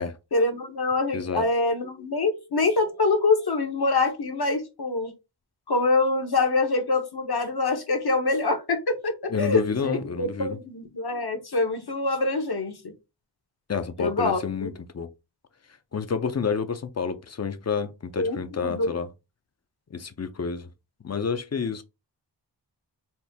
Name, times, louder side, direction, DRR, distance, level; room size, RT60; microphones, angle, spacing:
voice 1, 0.3-5.1 5.7-12.9 14.0-14.7 18.2-19.0, left 3 dB, 60° left, 1.0 m, -25 dB
voice 2, 1.1-1.4 9.3-10.6 13.7-15.1 15.9-19.1 19.9-20.7 21.0-21.8, left 5 dB, 35° left, 0.6 m, -29 dB
4.3 x 2.0 x 3.5 m
wide cardioid pair, 45°, 44 cm